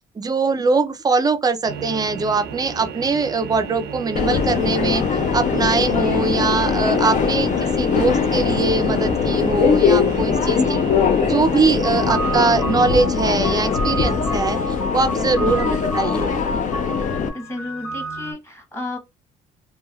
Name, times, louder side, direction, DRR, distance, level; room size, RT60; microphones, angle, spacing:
voice 1, 0.2-5.0 5.3-10.8 11.2-16.3, right 4 dB, 25° right, 0.5 m, -22 dB
sound 1, 1.6-12.8, right 7 dB, 85° right, 0.6 m, -33 dB
Subway metro underground, 4.2-17.3, left 6 dB, 45° left, 0.6 m, -21 dB
sound 2, 11.8-18.3, right 1 dB, 75° left, 1.9 m, -30 dB
voice 2, 17.3-19.0, left 1 dB, 15° left, 1.1 m, -31 dB
3.1 x 2.3 x 2.3 m
cardioid pair, 110°, 17 cm